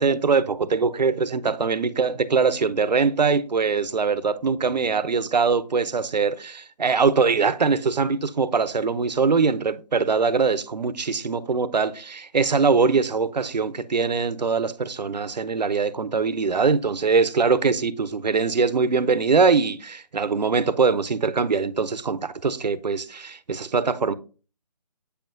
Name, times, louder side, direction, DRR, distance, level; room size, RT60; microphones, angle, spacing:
voice 1, 0.0-24.1, right 5 dB, 85° right, 0.7 m, -22 dB
8.3 x 5.7 x 2.5 m
figure-of-eight pair, 160°, 21 cm